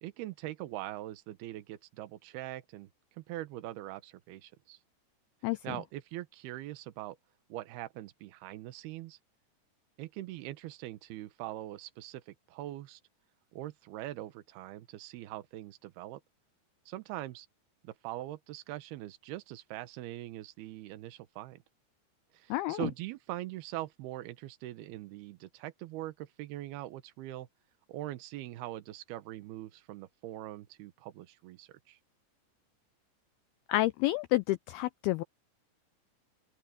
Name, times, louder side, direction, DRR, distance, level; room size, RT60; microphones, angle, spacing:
voice 1, 0.0-2.9 3.2-4.8 5.6-7.2 7.5-9.2 10.0-13.0 13.5-16.2 16.9-17.5 17.8-21.6 22.3-27.5 27.9-32.0, right 15 dB, 70° right, 2.9 m, -42 dB
voice 2, 22.5-22.9 33.7-35.2, left 17 dB, 85° left, 2.2 m, -29 dB
open air
omnidirectional pair, 5.0 m